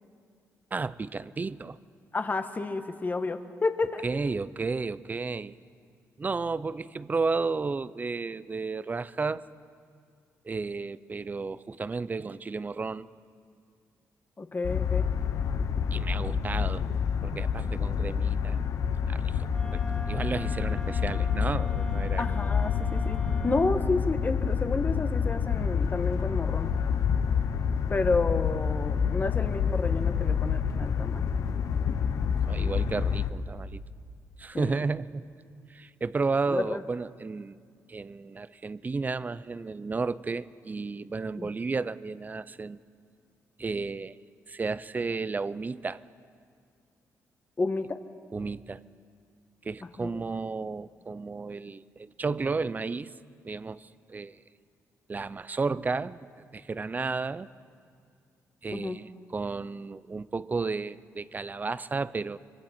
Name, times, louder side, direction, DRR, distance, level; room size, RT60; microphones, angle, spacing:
voice 1, 0.7-1.8 4.0-5.5 6.2-9.5 10.4-13.1 15.9-16.9 17.2-18.6 19.1-22.5 32.5-33.8 34.4-35.2 35.7-37.6 37.9-42.8 43.6-44.2 44.5-46.0 48.3-48.8 49.6-53.1 53.4-54.4 55.1-56.3 56.5-57.5 58.6-62.4, right 4 dB, 30° right, 17 dB, 0.6 m, -33 dB
voice 2, 2.1-4.0 14.4-15.1 22.2-26.7 27.9-31.2 34.5-34.7 36.5-36.8 41.4-41.5 47.6-48.0 50.0-50.1 58.7-59.0, left 3 dB, 30° left, 8 dB, 1.4 m, -30 dB
sound 1, 14.6-33.3, left 7 dB, 65° left, 1.1 m, -28 dB
Wind instrument woodwind instrument, 19.5-23.8, left 3 dB, 15° left, 2.0 m, -42 dB
26.0 x 23.5 x 4.4 m, 2.2 s
cardioid pair, 80°, 6 cm